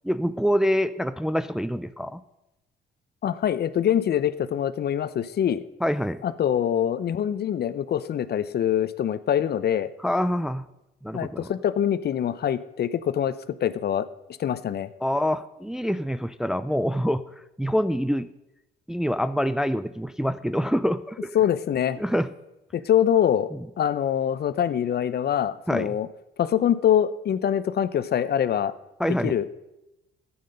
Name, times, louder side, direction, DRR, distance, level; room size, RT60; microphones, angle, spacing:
voice 1, 0.0-2.2 5.8-6.2 10.0-10.7 11.0-11.5 15.0-17.2 17.6-18.3 18.9-21.3 22.0-22.3 23.5-23.6 25.7-26.0 29.0-29.3, equal, 5° right, 12 dB, 0.4 m, -25 dB
voice 2, 3.2-5.6 6.2-9.9 11.1-13.3 13.6-14.1 14.4-14.9 21.3-22.0 22.7-23.5 23.8-26.1 26.4-28.7 29.2-29.5, left 9 dB, 55° left, 15 dB, 0.6 m, -24 dB
12.0 x 8.7 x 5.3 m, 0.93 s
cardioid pair, 90°, 20 cm